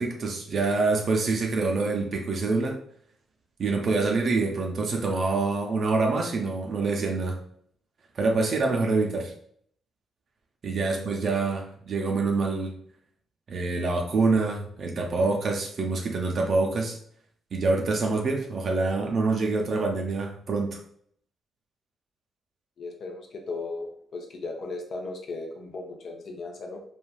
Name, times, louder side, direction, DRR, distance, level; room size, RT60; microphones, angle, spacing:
voice 1, 0.0-2.8 3.6-7.4 8.1-9.3 10.6-12.8 13.5-17.0 17.5-20.8, right 3 dB, 55° right, 1 dB, 0.5 m, -26 dB
voice 2, 22.8-26.8, left 3 dB, 55° left, 2 dB, 0.6 m, -36 dB
3.3 x 2.3 x 2.2 m, 0.64 s
hypercardioid pair, 40°, 0 cm